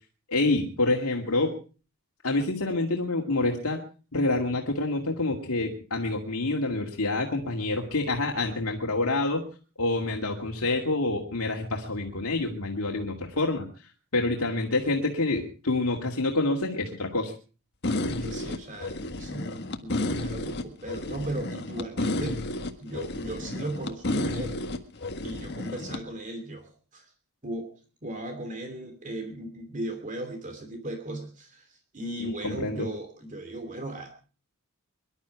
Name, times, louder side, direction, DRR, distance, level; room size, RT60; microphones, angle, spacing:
voice 1, 0.3-1.5 2.2-3.8 4.1-9.4 9.8-13.7 14.1-17.3 32.2-32.9, left 2 dB, 80° left, 0 dB, 2.3 m, -27 dB
sound 1, 17.8-26.0, left 2 dB, 50° left, 1.6 m, -31 dB
voice 2, 18.0-22.4 22.8-24.6 25.2-27.1 27.4-27.7 28.0-34.1, right 1 dB, 35° right, 6 dB, 2.8 m, -37 dB
23.5 x 12.0 x 4.7 m, 0.38 s
head